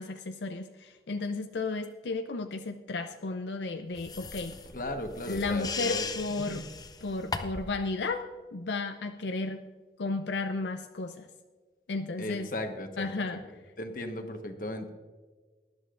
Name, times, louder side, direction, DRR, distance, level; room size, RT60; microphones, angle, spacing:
voice 1, 0.0-4.6 5.3-6.6 7.0-8.2 8.5-9.7 10.0-11.3 11.9-12.5 13.0-13.4, left 3 dB, 85° left, 6 dB, 0.6 m, -33 dB
sound 1, 1.2-1.3 2.1-2.2 3.1-3.2 4.2-5.6 6.2-6.3, right 1 dB, 50° right, 1.4 m, -55 dB
sound 2, 4.0-7.8, left 4 dB, 20° left, 0.6 m, -38 dB
voice 2, 4.7-6.0 6.4-6.7 12.2-13.2 13.8-14.9, left 1 dB, 50° left, 5 dB, 1.2 m, -36 dB
19.5 x 11.0 x 2.5 m, 1.4 s
head